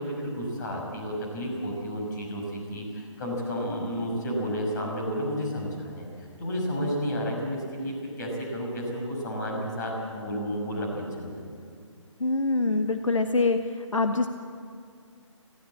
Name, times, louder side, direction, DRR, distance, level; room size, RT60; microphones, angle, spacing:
voice 1, 0.0-11.4, equal, 35° left, 0 dB, 5.8 m, -31 dB
voice 2, 12.2-13.6 13.9-14.3, left 3 dB, 80° left, 7 dB, 1.1 m, -24 dB
19.0 x 16.0 x 8.6 m, 2.2 s
figure-of-eight pair, 145°, 16 cm